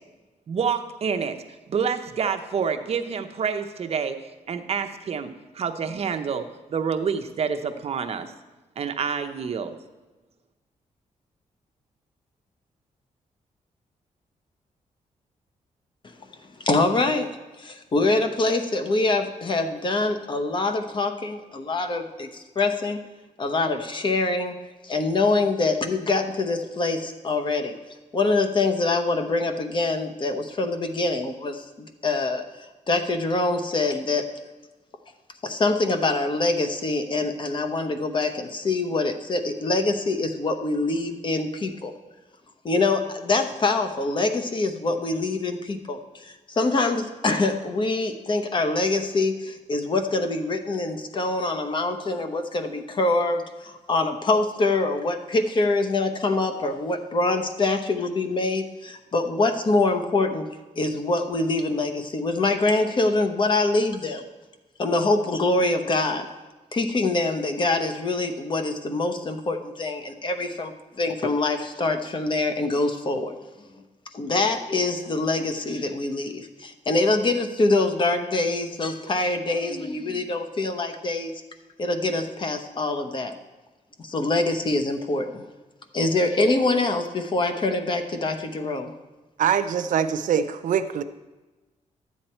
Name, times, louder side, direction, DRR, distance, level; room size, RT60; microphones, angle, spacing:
voice 1, 0.5-1.3 1.7-6.4 6.7-8.3 8.8-9.8, right 6 dB, 50° right, 7 dB, 0.8 m, -28 dB
voice 2, 16.6-17.3 17.6-23.0 23.4-24.5 24.8-27.8 28.1-32.4 32.9-34.3 35.4-41.9 42.6-60.5 60.8-64.2 64.8-66.3 66.7-73.8 74.1-81.3 81.8-83.3 84.0-85.4 85.9-88.9, left 2 dB, 40° left, 7 dB, 0.9 m, -24 dB
voice 3, 89.4-91.0, right 8 dB, 85° right, 10 dB, 0.6 m, -23 dB
12.0 x 8.5 x 4.4 m, 1.2 s
wide cardioid pair, 150°, 13 cm